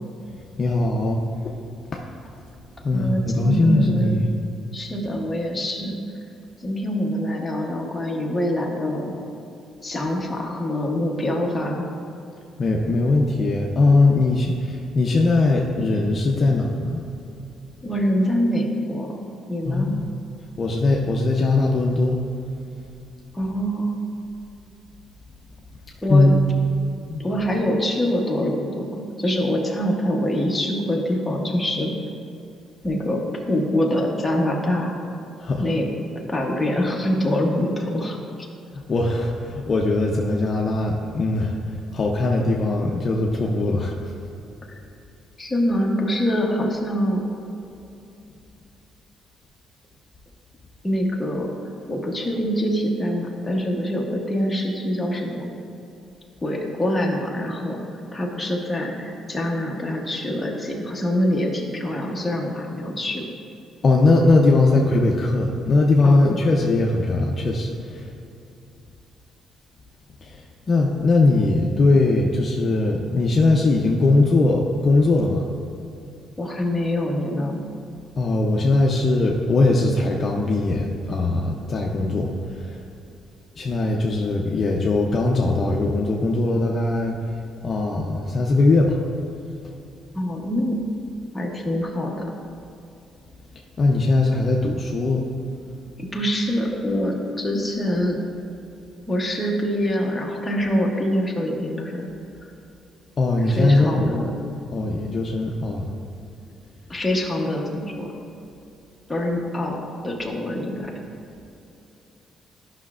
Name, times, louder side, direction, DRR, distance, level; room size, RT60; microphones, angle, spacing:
voice 1, 0.6-2.0 2.8-4.1 12.6-17.0 19.7-20.0 20.6-22.2 26.1-26.5 27.1-27.2 35.4-35.6 38.9-44.1 63.8-68.1 70.2-70.4 70.7-75.5 78.2-82.8 83.6-87.2 87.6-89.0 93.8-95.3 103.2-104.1 104.7-105.9, left 2 dB, 35° left, 0 dB, 0.5 m, -20 dB
voice 2, 2.9-4.3 4.7-6.0 6.6-9.2 9.8-11.9 17.8-20.0 23.3-24.0 26.0-26.3 27.2-31.9 32.8-34.9 35.6-35.9 36.3-38.2 44.7-44.8 45.4-47.3 50.8-51.5 51.9-55.5 56.4-57.8 58.1-63.2 66.0-66.4 76.4-77.7 90.1-90.9 91.3-92.3 96.0-98.2 99.1-102.1 103.4-104.3 106.9-108.1 109.1-110.9, equal, 10° left, -1 dB, 0.9 m, -25 dB
11.5 x 5.7 x 2.4 m, 2.8 s
cardioid pair, 155°, 0 cm